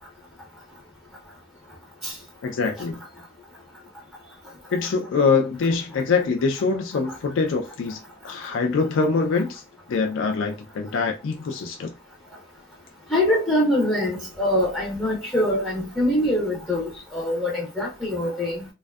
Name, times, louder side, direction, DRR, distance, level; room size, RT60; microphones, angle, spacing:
voice 1, 2.4-3.0 4.7-9.6 9.9-11.9, left 4 dB, 65° left, 0.4 m, -24 dB
voice 2, 13.1-18.7, left 1 dB, 5° left, 0.5 m, -24 dB
2.5 x 2.2 x 2.3 m
head